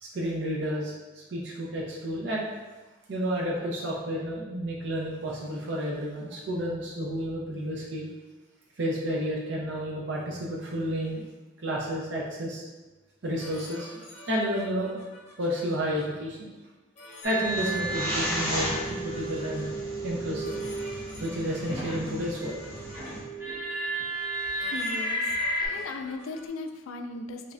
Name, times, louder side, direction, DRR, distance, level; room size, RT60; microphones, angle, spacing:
voice 1, 0.0-0.9 1.3-2.5 3.1-8.1 8.8-11.2 11.6-12.6 13.2-14.9 15.4-16.5 17.2-19.8 20.0-20.5 21.2-22.6 24.4-24.7 25.6-25.8, equal, 60° right, -4 dB, 0.5 m, -31 dB
sound 1, 13.4-16.0 17.0-19.6 20.4-23.1 24.1-24.3 24.6-26.5, left 2 dB, 35° left, 0.7 m, -49 dB
sound 2, 17.2-22.1 22.4-25.7, right 1 dB, 20° right, 1.0 m, -33 dB
sound 3, 17.4-23.2, equal, 15° left, 1.3 m, -36 dB
voice 2, 24.7-27.5, left 3 dB, 85° left, 5 dB, 0.3 m, -38 dB
3.3 x 3.1 x 2.5 m, 1.2 s
head